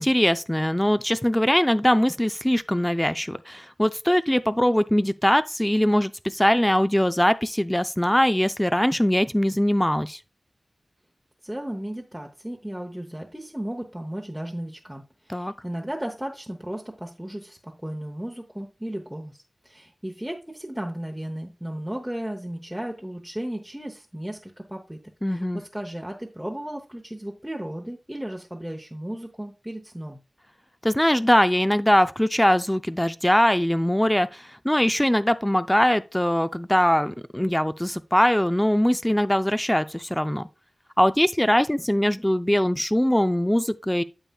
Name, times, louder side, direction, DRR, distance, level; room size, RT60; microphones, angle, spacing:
voice 1, 0.0-10.2 15.3-15.5 25.2-25.6 30.8-40.5 41.0-44.0, equal, 10° left, 0.3 m, -21 dB
voice 2, 11.4-19.4 19.6-25.0 25.3-30.2, right 1 dB, 5° right, 0.8 m, -35 dB
9.0 x 6.9 x 2.3 m
wide cardioid pair, 65°, 0 cm